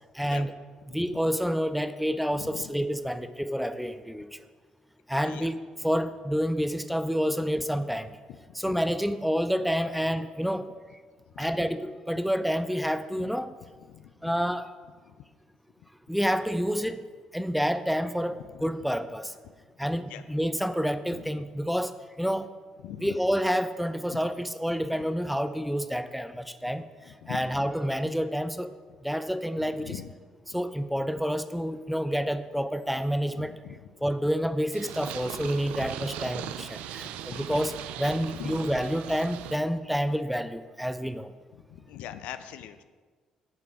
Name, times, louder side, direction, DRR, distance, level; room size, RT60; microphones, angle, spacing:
voice 1, 0.2-0.5 0.9-4.3 5.1-8.1 8.5-10.7 11.4-13.5 14.2-14.7 16.1-17.0 17.3-19.3 19.8-21.9 22.2-22.5 23.0-26.9 27.3-28.7 29.0-30.0 30.5-33.5 34.0-41.3, equal, ahead, 11 dB, 0.5 m, -28 dB
voice 2, 2.4-2.7 5.3-5.5 8.5-8.6 11.3-11.5 13.2-13.3 13.9-14.3 15.1-15.2 18.4-18.5 20.1-20.2 21.1-21.3 22.8-23.1 24.1-24.2 26.7-26.8 27.0-27.5 29.6-30.1 30.5-30.6 33.3-33.8 36.4-36.5 37.1-37.7 38.3-38.5 41.5-42.8, left 11 dB, 70° left, 11 dB, 0.4 m, -42 dB
Purr, 34.7-39.6, right 11 dB, 70° right, 0.3 m, -39 dB
8.3 x 6.7 x 3.6 m, 1.5 s
hypercardioid pair, 50°, 2 cm